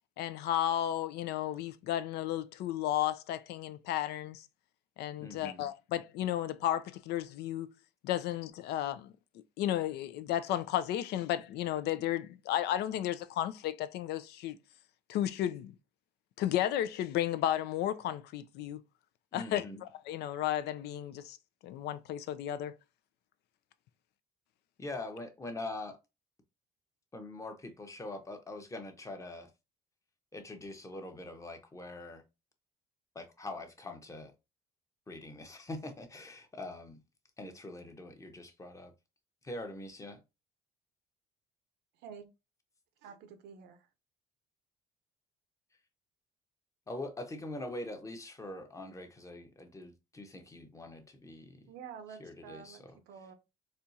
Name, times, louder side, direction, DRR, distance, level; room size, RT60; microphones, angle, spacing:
voice 1, 0.2-4.4 5.0-7.7 8.0-9.1 9.6-14.6 15.1-15.7 16.4-18.8 19.3-21.4 21.6-22.7, left 12 dB, 75° left, 0.5 m, -33 dB
voice 2, 5.2-5.6 19.3-19.8 24.8-26.0 27.1-29.5 30.3-32.2 33.1-34.3 35.1-37.0 37.4-38.9 39.4-40.2 46.9-51.6 52.2-53.0, left 2 dB, 20° left, 0.8 m, -43 dB
voice 3, 43.0-43.8 51.7-53.3, right 7 dB, 85° right, 0.8 m, -49 dB
4.3 x 2.4 x 2.6 m
cardioid pair, 110°, 17 cm